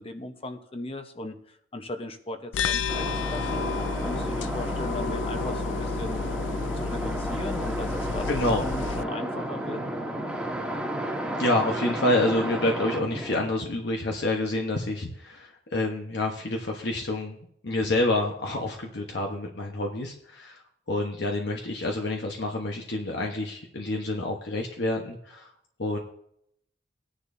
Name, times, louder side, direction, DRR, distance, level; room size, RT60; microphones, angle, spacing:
voice 1, 0.0-3.7 4.0-6.2 6.8-9.8, left 2 dB, 30° left, 7 dB, 1.0 m, -37 dB
sound 1, 2.5-9.0, left 5 dB, 85° left, 0.4 m, -31 dB
sound 2, 2.9-13.5, right 1 dB, 5° right, 1.5 m, -32 dB
voice 2, 8.3-8.6 11.4-17.4 17.6-20.6 20.9-25.5 25.8-26.0, left 2 dB, 65° left, 1 dB, 1.1 m, -28 dB
17.0 x 10.0 x 2.7 m, 0.69 s
head